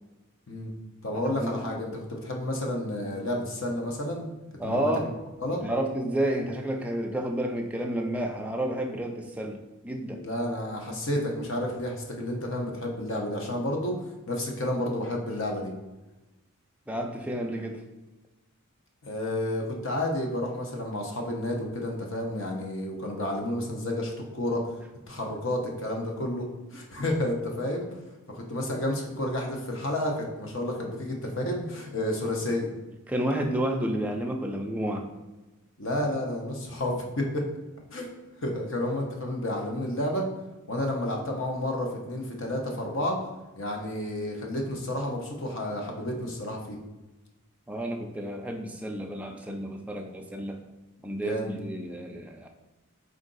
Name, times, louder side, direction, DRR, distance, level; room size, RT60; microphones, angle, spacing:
voice 1, 1.0-4.2 4.6-4.9 5.4-5.7 10.2-14.0 14.3-15.7 19.0-24.6 25.1-27.9 28.3-32.7 35.8-37.5 37.9-38.1 38.4-40.3 40.7-43.2 43.6-46.8 51.2-51.5, left 1 dB, 60° left, 1 dB, 0.8 m, -30 dB
voice 2, 4.6-5.1 5.6-10.2 16.9-17.8 33.1-35.1 47.7-50.6 51.0-52.5, right 1 dB, 5° right, 1 dB, 0.3 m, -30 dB
4.6 x 2.6 x 3.8 m, 1.1 s
head